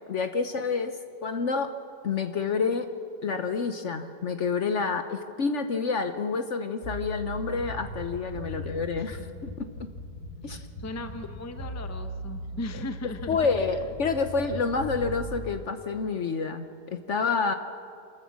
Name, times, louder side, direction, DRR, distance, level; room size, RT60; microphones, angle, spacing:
voice 1, 0.1-0.9 1.2-1.7 2.0-2.9 3.2-9.9 10.4-10.6 13.3-17.5, left 4 dB, 55° left, 8 dB, 1.0 m, -28 dB
sound 1, 6.8-15.5, equal, 70° left, 5.6 m, -38 dB
voice 2, 8.3-8.7 9.0-9.1 10.8-13.8, left 2 dB, 15° left, 8 dB, 0.7 m, -38 dB
27.0 x 13.5 x 7.4 m, 2.3 s
omnidirectional pair, 1.7 m